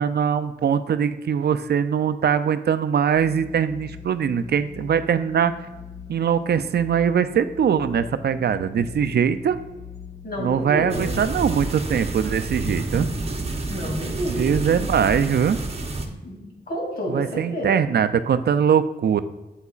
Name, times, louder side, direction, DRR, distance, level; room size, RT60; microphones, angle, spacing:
voice 1, 0.0-5.5 6.1-9.6 10.4-13.1 14.3-15.6 17.1-19.2, right 7 dB, 65° right, 11 dB, 0.4 m, -22 dB
sound 1, 3.1-11.2, left 5 dB, 40° left, 1.1 m, -41 dB
voice 2, 10.2-11.1 13.7-14.5 16.2-17.7, equal, 60° left, -1 dB, 2.5 m, -30 dB
sound 2, 10.9-16.1, right 2 dB, 35° right, 0.9 m, -29 dB
8.2 x 7.9 x 2.4 m, 1.1 s
wide cardioid pair, 105°, 18 cm